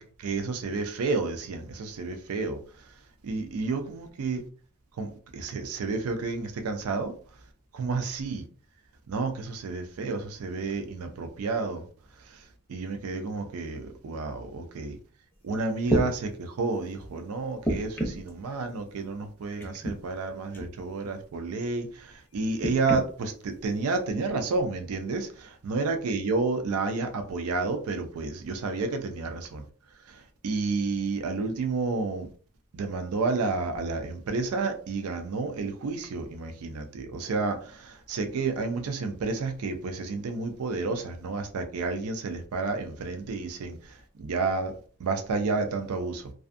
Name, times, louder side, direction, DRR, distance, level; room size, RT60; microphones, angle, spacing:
voice 1, 0.2-2.6 3.2-4.4 5.0-7.1 7.7-8.4 9.1-11.8 12.7-15.0 15.4-29.6 30.1-32.3 32.7-46.3, right 3 dB, 80° right, 0.4 m, -30 dB
sound 1, 15.3-15.4 15.8-16.1 17.6-18.3 19.6-20.0 20.5-20.7 22.6-23.0 23.9-24.0, right 1 dB, 10° left, 0.4 m, -28 dB
2.5 x 2.3 x 2.4 m
head